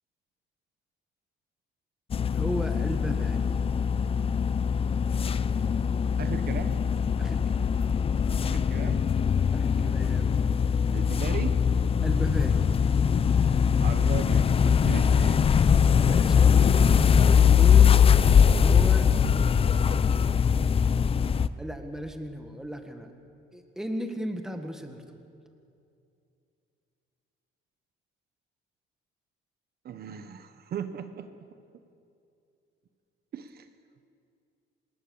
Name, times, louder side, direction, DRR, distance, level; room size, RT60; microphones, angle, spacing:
sound 1, 2.1-21.5, left 7 dB, 25° left, 0.5 m, -22 dB
voice 1, 2.3-3.6 7.2-7.7 9.5-10.4 12.0-12.6 16.0-18.1 18.5-19.1 21.6-23.1 23.5-25.3, equal, ahead, 5 dB, 1.7 m, -35 dB
voice 2, 6.2-6.8 8.4-9.1 10.9-11.5 13.8-14.5 14.8-15.4 29.8-31.3 33.3-33.7, right 8 dB, 50° right, 9 dB, 1.1 m, -37 dB
26.5 x 20.0 x 7.2 m, 2.5 s
cardioid pair, 160°, 21 cm